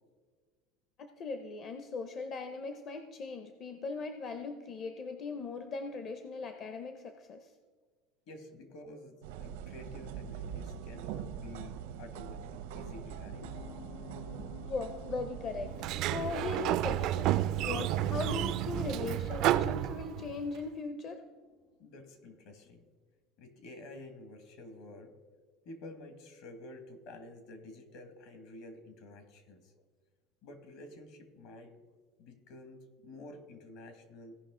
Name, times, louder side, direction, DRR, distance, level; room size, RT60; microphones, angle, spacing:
voice 1, 1.0-7.5 14.7-15.7 16.0-21.2, left 4 dB, 35° left, 7 dB, 0.6 m, -39 dB
voice 2, 8.3-13.5 21.8-22.9 23.4-25.1 25.7-29.7 30.4-31.8 32.2-34.4, left 2 dB, 60° left, 6 dB, 1.7 m, -50 dB
sound 1, 9.2-18.4, right 8 dB, 85° right, 0.8 m, -43 dB
sound 2, 13.4-21.5, left 7 dB, 85° left, 1.5 m, -54 dB
Sliding door, 15.8-20.5, right 13 dB, 45° right, 0.3 m, -31 dB
16.5 x 5.6 x 3.7 m, 1.5 s
cardioid pair, 160°, 0 cm